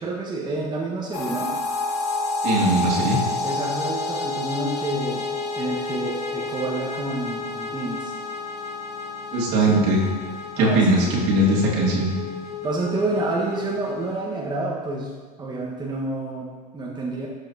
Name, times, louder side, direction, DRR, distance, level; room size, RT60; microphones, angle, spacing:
voice 1, 0.0-1.5 3.4-8.1 9.7-9.8 10.6-11.3 12.6-15.1 15.4-17.3, right 2 dB, 20° right, -4 dB, 1.4 m, -29 dB
sound 1, 1.1-14.2, left 3 dB, 85° left, 1.2 m, -30 dB
voice 2, 2.4-3.2 9.3-10.0 10.6-12.1, right 1 dB, 55° right, -4 dB, 2.5 m, -20 dB
12.0 x 5.6 x 2.8 m, 1.5 s
hypercardioid pair, 90°, 21 cm